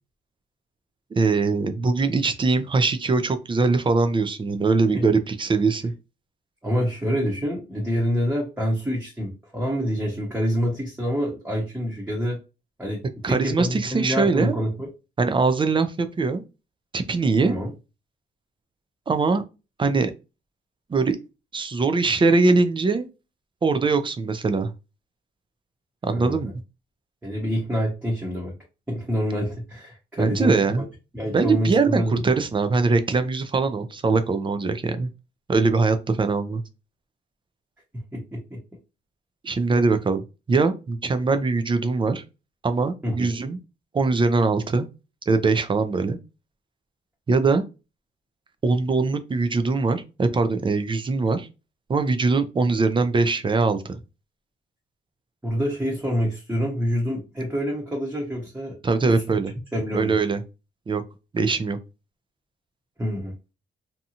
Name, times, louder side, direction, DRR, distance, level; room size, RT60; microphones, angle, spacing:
voice 1, 1.2-5.9 13.2-14.6 15.2-16.4 16.9-17.5 19.1-19.4 19.8-20.1 20.9-21.2 21.5-23.1 23.6-24.7 26.0-26.5 30.2-30.9 31.3-35.1 35.5-36.6 39.4-40.2 40.5-42.2 42.6-43.6 43.9-44.9 45.3-46.2 47.3-47.6 48.6-51.5 51.9-54.0 58.8-59.5 59.9-60.4 60.9-61.0 61.3-61.8, right 4 dB, 25° right, 9 dB, 0.4 m, -22 dB
voice 2, 6.6-12.4 12.8-14.9 17.4-17.7 26.1-26.5 27.2-28.5 28.9-30.6 31.1-32.2 38.1-38.6 43.0-43.3 55.4-58.7 59.1-59.2 59.7-60.1 63.0-63.3, equal, 10° right, -4 dB, 0.9 m, -26 dB
2.7 x 2.3 x 2.7 m, 0.29 s
cardioid pair, 90°, 20 cm